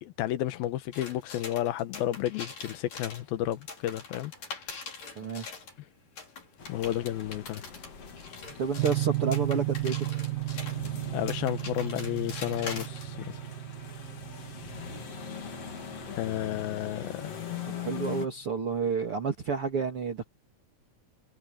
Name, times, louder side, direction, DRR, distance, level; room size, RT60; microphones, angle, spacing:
voice 1, 0.0-4.3 6.7-7.6 11.1-13.4 16.1-17.2, left 13 dB, 85° left, 2.9 m, -32 dB
sound 1, 0.9-5.8 6.2-13.1, left 4 dB, 60° left, 6.9 m, -43 dB
voice 2, 5.2-5.5 8.6-10.2 17.6-20.2, right 5 dB, 40° right, 2.9 m, -30 dB
sound 2, 6.6-18.3, left 7 dB, 45° left, 3.6 m, -42 dB
sound 3, 8.8-17.5, right 19 dB, 65° right, 2.7 m, -34 dB
omnidirectional pair, 4.2 m